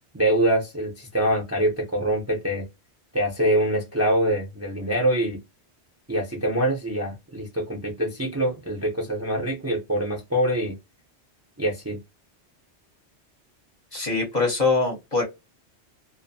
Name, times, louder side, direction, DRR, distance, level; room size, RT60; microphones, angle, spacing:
voice 1, 0.1-2.6 3.1-5.4 6.1-10.8 11.6-12.0, right 1 dB, 20° right, 0.5 m, -24 dB
voice 2, 13.9-15.2, left 3 dB, 45° left, 0.8 m, -23 dB
2.4 x 2.1 x 2.5 m
omnidirectional pair, 1.1 m